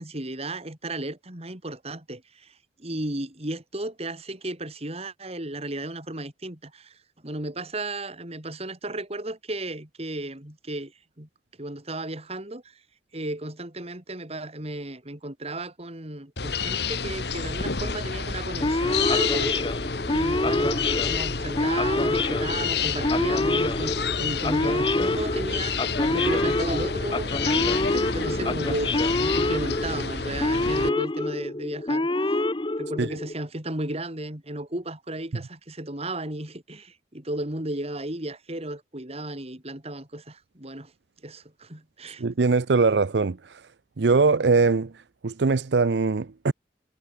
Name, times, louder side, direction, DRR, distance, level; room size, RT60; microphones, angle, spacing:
voice 1, 0.0-2.5 2.8-6.9 7.2-10.9 11.2-11.3 11.6-12.6 13.1-19.6 20.1-32.1 32.8-40.9 41.2-42.2, right 1 dB, 35° right, 3.8 m, -34 dB
sound 1, 16.4-30.9, left 5 dB, 65° left, 1.8 m, -29 dB
Male speech man speaking / Siren, 18.6-33.3, left 2 dB, 30° left, 1.0 m, -26 dB
voice 2, 42.2-43.7 44.0-46.5, right 4 dB, 75° right, 0.6 m, -22 dB
head